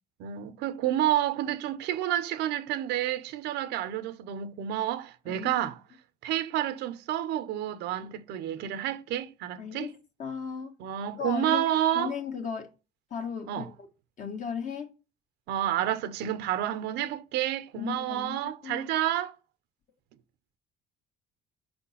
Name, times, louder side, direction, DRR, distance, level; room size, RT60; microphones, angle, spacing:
voice 1, 0.2-5.8 6.2-9.9 10.8-12.1 13.5-13.7 15.5-19.3, right 12 dB, 90° right, 0.8 m, -29 dB
voice 2, 5.3-5.7 8.0-8.1 9.6-10.7 11.1-11.6 11.9-12.7 13.1-13.9 14.2-14.9 17.7-18.4 18.6-18.9, left 6 dB, 50° left, 1.6 m, -36 dB
5.2 x 4.4 x 5.7 m
cardioid pair, 110°, 17 cm